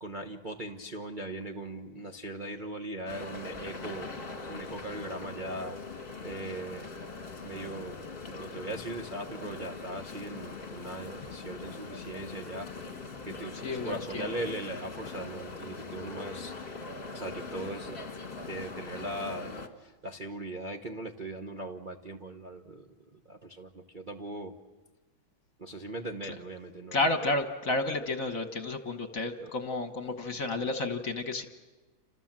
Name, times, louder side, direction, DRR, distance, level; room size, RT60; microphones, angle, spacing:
voice 1, 0.0-4.1 4.5-5.9 6.2-7.0 7.4-12.8 13.2-16.8 17.1-18.0 18.2-24.5 25.6-27.1 29.4-29.5, right 1 dB, 30° right, 2 dB, 0.9 m, -40 dB
sound 1, 3.1-19.7, left 3 dB, 30° left, 1.9 m, -41 dB
voice 2, 13.6-14.3 26.9-31.5, left 2 dB, 45° left, 8 dB, 1.6 m, -31 dB
29.0 x 26.5 x 7.5 m, 1.2 s
omnidirectional pair, 2.2 m